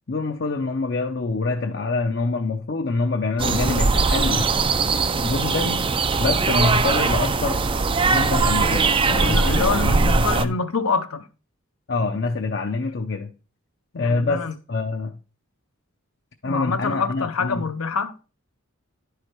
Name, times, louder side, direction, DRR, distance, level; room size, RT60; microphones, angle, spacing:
voice 1, 0.1-4.5 5.2-5.9 6.2-7.6 8.0-10.6 11.9-13.3 13.9-15.2 16.4-17.6, left 3 dB, 50° left, 0.6 m, -26 dB
sound 1, 3.4-10.5, right 4 dB, 25° right, 0.4 m, -20 dB
voice 2, 9.1-11.3 13.9-14.5 16.4-18.2, left 4 dB, 80° left, 0.8 m, -26 dB
10.5 x 4.8 x 4.5 m
head